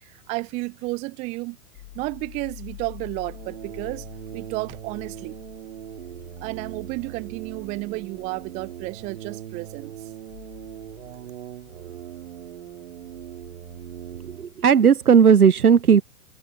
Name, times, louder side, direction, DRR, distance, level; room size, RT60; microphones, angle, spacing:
voice 1, 0.0-1.6 1.9-4.0 4.3-5.4 6.4-9.9, right 23 dB, 15° right, 0.5 m, -32 dB
sound 1, 1.7-14.4, left 22 dB, 40° left, 5.1 m, -47 dB
sound 2, 3.2-14.5, right 11 dB, 55° right, 2.8 m, -40 dB
voice 2, 14.2-16.0, right 7 dB, 90° right, 0.6 m, -16 dB
figure-of-eight pair, 110°, 44 cm